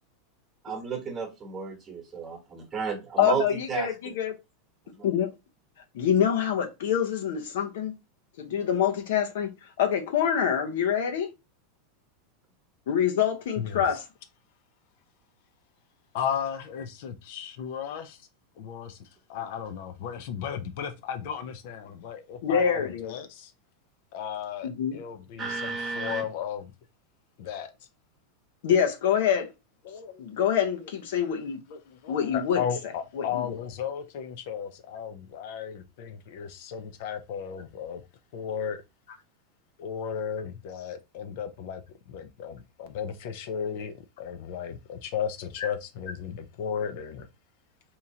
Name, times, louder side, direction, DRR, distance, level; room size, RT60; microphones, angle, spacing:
voice 1, 0.6-4.1 25.4-26.2, right 5 dB, 25° right, 1.2 m, -32 dB
voice 2, 3.2-4.3 5.0-5.3 5.9-7.9 8.4-11.3 12.9-14.0 22.4-23.1 24.6-25.0 28.6-29.5 30.2-31.6 32.1-32.6 33.2-33.6, left 8 dB, 75° left, 0.9 m, -26 dB
voice 3, 13.6-14.0 16.1-18.3 18.6-23.5 24.1-26.6 27.4-27.7 29.8-30.3 31.7-38.0 38.3-38.8 39.8-41.8 42.1-47.3, left 8 dB, 60° left, 0.6 m, -35 dB
3.7 x 2.9 x 2.8 m
supercardioid pair, 140°, 0 cm